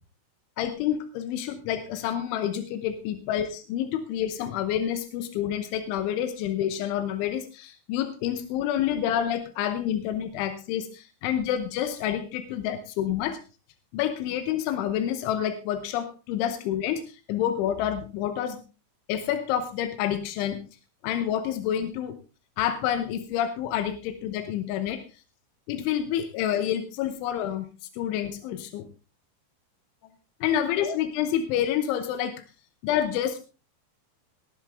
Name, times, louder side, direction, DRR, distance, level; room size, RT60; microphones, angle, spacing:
voice 1, 0.6-13.4 13.9-18.6 19.1-20.6 21.0-22.2 22.6-25.0 25.7-27.7 27.9-28.9 30.4-32.4 32.8-33.4, left 10 dB, 85° left, 9 dB, 3.5 m, -28 dB
18.5 x 11.0 x 3.5 m, 0.32 s
omnidirectional pair, 5.3 m